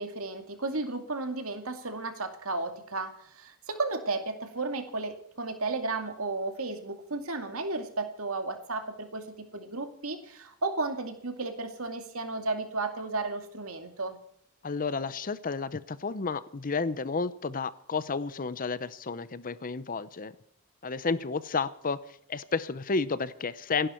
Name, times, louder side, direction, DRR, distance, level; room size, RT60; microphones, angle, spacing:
voice 1, 0.0-9.3 9.5-14.2, right 3 dB, 65° right, 6 dB, 2.4 m, -33 dB
voice 2, 14.6-20.3 20.8-23.9, left 4 dB, 40° left, 16 dB, 0.7 m, -31 dB
28.0 x 11.5 x 4.5 m, 0.68 s
head